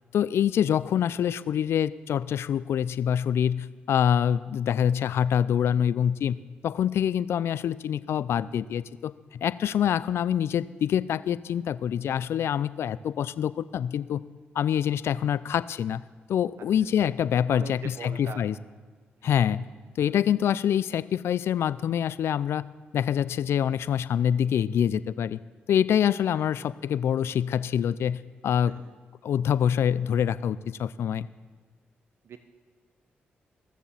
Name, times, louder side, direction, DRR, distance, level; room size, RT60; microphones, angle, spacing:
voice 1, 0.1-6.4 6.6-14.2 14.5-16.0 16.3-18.5 19.2-19.7 20.0-22.6 22.9-25.4 25.7-28.8 29.2-31.3, left 9 dB, 70° left, 17 dB, 0.4 m, -25 dB
voice 2, 17.4-18.4 19.2-19.4 26.3-26.5 28.7-28.9 32.2-32.4, right 6 dB, 65° right, 9 dB, 0.8 m, -42 dB
15.5 x 7.1 x 7.4 m, 1.5 s
supercardioid pair, 50°, 4 cm